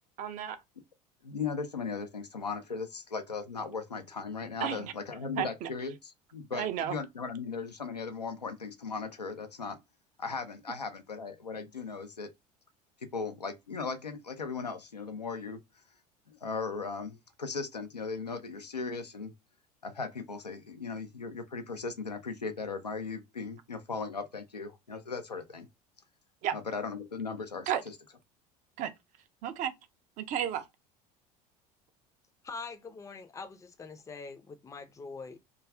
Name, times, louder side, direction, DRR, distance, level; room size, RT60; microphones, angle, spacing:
voice 1, 0.2-0.6 4.6-4.9 5.4-5.7 6.5-7.0 26.4-26.5 27.7-27.8 28.8-28.9 29.4-29.7 30.2-30.6, right 10 dB, 40° right, 0.4 m, -32 dB
voice 2, 1.2-9.8 10.2-12.3 13.1-15.6 16.3-19.3 19.8-25.7 26.5-27.9, left 4 dB, 85° left, 0.4 m, -37 dB
voice 3, 32.4-35.4, left 4 dB, 15° left, 0.5 m, -43 dB
2.3 x 2.3 x 3.1 m
figure-of-eight pair, 65°, 20 cm